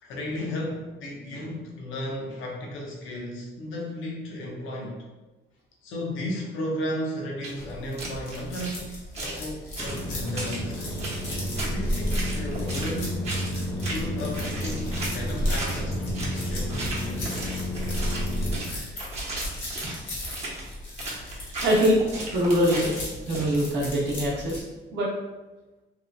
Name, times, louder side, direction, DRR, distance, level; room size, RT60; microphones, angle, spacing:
voice 1, 0.0-5.1 5.8-10.7 11.6-13.2 13.7-17.4, left 1 dB, 85° left, -1 dB, 0.7 m, -34 dB
sound 1, 7.4-7.5 8.0-8.8 9.1-9.4 9.8-10.6 11.0-11.7 12.1-13.0 13.2-13.6 13.8-14.1 14.3-16.4 16.7-23.9, right 2 dB, 35° right, 0.8 m, -35 dB
sound 2, 7.6-24.6, left 1 dB, 70° left, 1.0 m, -38 dB
sound 3, 9.8-18.6, equal, 15° left, 0.6 m, -30 dB
voice 2, 21.6-22.0 22.3-22.9 23.3-24.6 24.9-25.1, equal, 65° right, -4 dB, 0.7 m, -23 dB
2.9 x 2.5 x 2.2 m, 1.1 s
cardioid pair, 90°, 20 cm